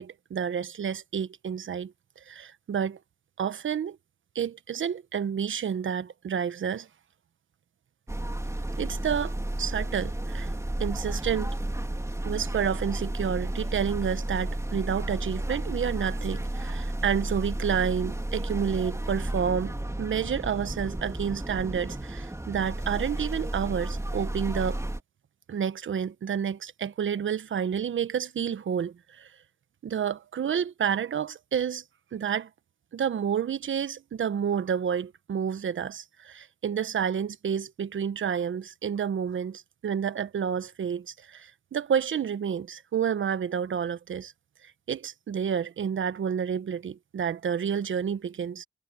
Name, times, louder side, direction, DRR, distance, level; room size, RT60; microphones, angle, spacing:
voice 1, 0.0-1.9 2.3-3.0 3.4-4.0 4.3-6.9 8.8-10.5 10.8-11.5 12.2-24.8 25.5-29.3 29.8-31.8 32.1-32.5 32.9-44.3 44.9-48.6, right 7 dB, 65° right, 1.2 m, -30 dB
sound 1, 8.1-25.0, right 1 dB, 15° right, 3.2 m, -32 dB
supercardioid pair, 50°, 21 cm